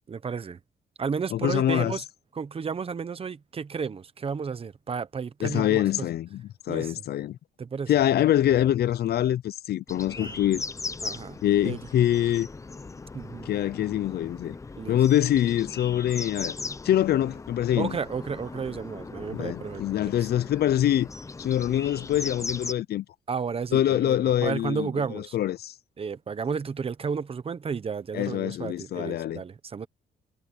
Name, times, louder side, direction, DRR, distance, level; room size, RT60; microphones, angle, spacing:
voice 1, 0.1-0.6 1.0-2.0 2.3-6.1 6.7-6.9 7.6-7.9 10.2-10.4 11.0-11.4 11.6-11.8 13.1-13.5 14.8-15.0 17.8-20.1 23.3-25.3 26.0-29.9, right 5 dB, 30° right, 0.9 m, -32 dB
voice 2, 1.3-2.0 5.4-7.4 7.9-10.6 11.4-12.5 13.5-14.6 14.9-16.6 16.8-18.0 19.3-21.1 21.4-23.0 23.7-25.7 28.1-29.4, left 11 dB, 60° left, 0.5 m, -25 dB
sound 1, 9.9-22.7, left 3 dB, 15° left, 0.6 m, -39 dB
cardioid pair, 150°, 19 cm